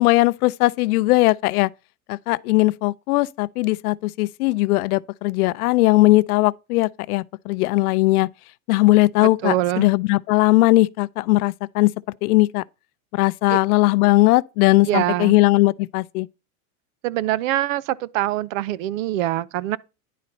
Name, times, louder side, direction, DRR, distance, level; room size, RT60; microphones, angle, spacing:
voice 1, 0.0-1.7 2.1-8.3 8.7-11.9 12.2-12.6 13.1-16.3, left 20 dB, 80° left, 0.6 m, -19 dB
voice 2, 9.4-9.9 13.5-13.6 14.8-15.3 17.0-19.8, right 14 dB, 60° right, 0.6 m, -24 dB
10.5 x 4.0 x 5.3 m
supercardioid pair, 170°, 44 cm